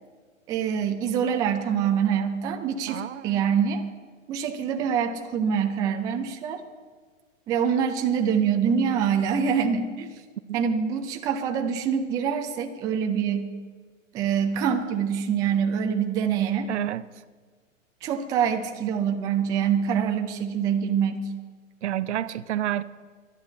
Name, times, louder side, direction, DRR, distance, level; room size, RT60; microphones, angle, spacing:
voice 1, 0.5-3.8 4.3-6.6 7.5-10.1 10.5-13.5 14.1-16.7 18.0-21.2, right 7 dB, 10° right, 5 dB, 0.4 m, -25 dB
voice 2, 2.9-3.4 16.7-17.0 21.8-22.8, right 12 dB, 60° right, 17 dB, 0.7 m, -29 dB
12.0 x 11.0 x 7.9 m, 1.5 s
hypercardioid pair, 135°, 39 cm